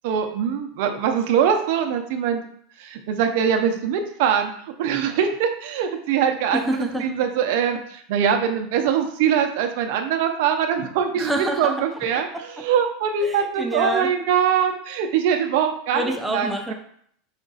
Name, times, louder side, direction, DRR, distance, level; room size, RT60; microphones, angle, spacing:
voice 1, 0.0-2.4 2.8-4.5 4.8-6.6 7.0-16.0 16.3-16.7, right 8 dB, 60° right, 5 dB, 0.6 m, -22 dB
voice 2, 6.5-7.2 11.1-11.8 12.3-12.6 13.2-14.1 15.9-16.7, equal, 5° right, 1 dB, 0.4 m, -27 dB
5.1 x 2.4 x 3.9 m, 0.64 s
supercardioid pair, 150°, 0 cm